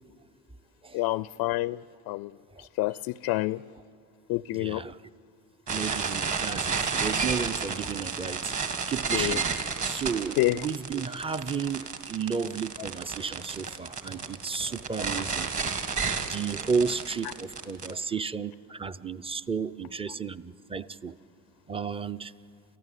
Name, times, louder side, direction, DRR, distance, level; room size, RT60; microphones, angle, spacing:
voice 1, 0.9-1.8 2.1-2.3 2.6-3.6 4.3-4.8 9.1-9.4 10.4-10.7, left 18 dB, 55° left, 0.5 m, -28 dB
voice 2, 4.5-5.0 5.7-15.5 16.2-21.1 21.7-22.3, right 5 dB, 10° right, 0.5 m, -33 dB
sound 1, 5.7-17.9, right 5 dB, 40° right, 2.3 m, -31 dB
sound 2, 13.1-17.8, right 2 dB, 65° right, 6.5 m, -51 dB
29.0 x 14.5 x 8.4 m
hypercardioid pair, 65°, 46 cm